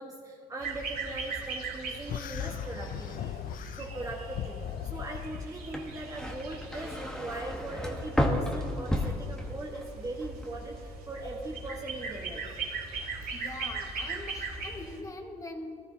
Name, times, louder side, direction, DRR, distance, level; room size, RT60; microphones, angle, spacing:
voice 1, 0.0-12.4, right 2 dB, 20° right, -2 dB, 1.4 m, -40 dB
sound 1, 0.6-15.0, right 3 dB, 65° right, 3.1 m, -40 dB
sound 2, 2.1-5.5, left 12 dB, 55° left, 0.4 m, -38 dB
sound 3, 5.6-9.9 10.2-10.8, left 1 dB, 5° left, 1.4 m, -32 dB
voice 2, 13.3-15.7, left 2 dB, 20° left, 2 dB, 1.6 m, -42 dB
18.5 x 13.0 x 2.8 m, 2.2 s
cardioid pair, 110°, 17 cm